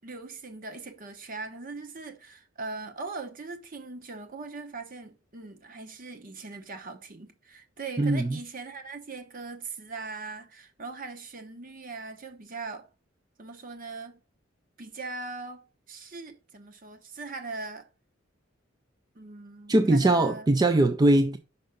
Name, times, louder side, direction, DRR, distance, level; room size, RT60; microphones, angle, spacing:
voice 1, 0.0-12.9 13.4-14.2 14.8-17.9 19.1-20.5, right 3 dB, 45° right, 1.0 m, -40 dB
voice 2, 8.0-8.4 19.7-21.4, right 2 dB, 20° right, 0.4 m, -21 dB
5.5 x 5.4 x 5.1 m
head